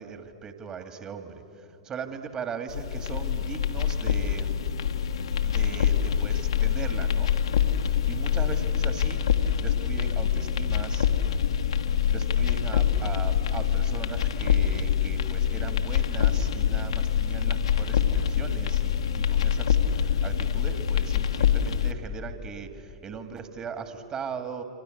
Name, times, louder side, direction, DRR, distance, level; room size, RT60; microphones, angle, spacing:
voice 1, 0.0-4.5 5.4-7.8 8.0-11.4 12.1-24.6, right 6 dB, 25° right, 7 dB, 2.3 m, -39 dB
sound 1, 2.7-21.9, left 8 dB, 70° left, 1.3 m, -25 dB
29.0 x 25.5 x 8.0 m, 2.9 s
figure-of-eight pair, 95°, 3 cm